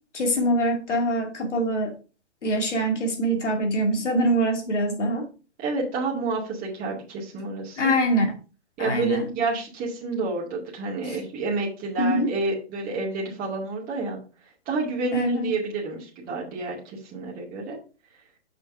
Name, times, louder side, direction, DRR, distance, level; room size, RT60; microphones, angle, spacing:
voice 1, 0.1-1.9 2.4-5.3 7.8-8.3 8.8-9.3 11.1-11.2 12.0-12.4 15.1-15.5, equal, 80° left, 2.4 m, -24 dB
voice 2, 5.6-8.0 8.8-14.2 14.7-17.8, right 3 dB, 25° right, 2.2 m, -29 dB
6.3 x 5.7 x 3.6 m
hypercardioid pair, 135°, 35 cm